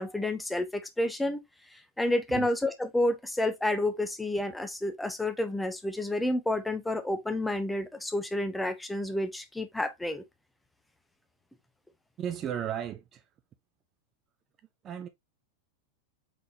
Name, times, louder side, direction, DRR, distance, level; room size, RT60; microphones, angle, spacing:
voice 1, 0.0-1.4 1.7-10.2, left 1 dB, 5° left, 0.8 m, -30 dB
voice 2, 12.2-13.2 14.8-15.1, right 9 dB, 30° right, 0.5 m, -34 dB
4.9 x 3.8 x 2.7 m
figure-of-eight pair, 90°, 0 cm